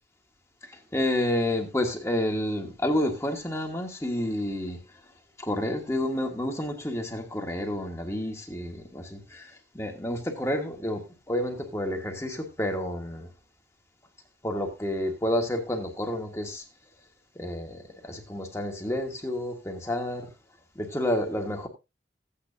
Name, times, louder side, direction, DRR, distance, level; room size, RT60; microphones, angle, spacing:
voice 1, 0.6-4.8 5.4-13.3 14.4-16.6 17.3-20.3 20.7-21.7, left 1 dB, 15° left, 1.5 m, -30 dB
15.0 x 8.7 x 2.7 m
head